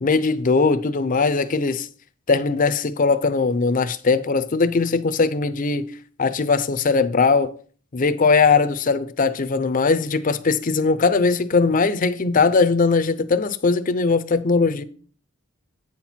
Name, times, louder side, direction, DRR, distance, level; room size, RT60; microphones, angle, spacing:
voice 1, 0.0-1.9 2.3-5.9 6.2-7.5 7.9-14.8, left 4 dB, 40° left, 0.5 m, -20 dB
8.7 x 4.4 x 5.7 m
head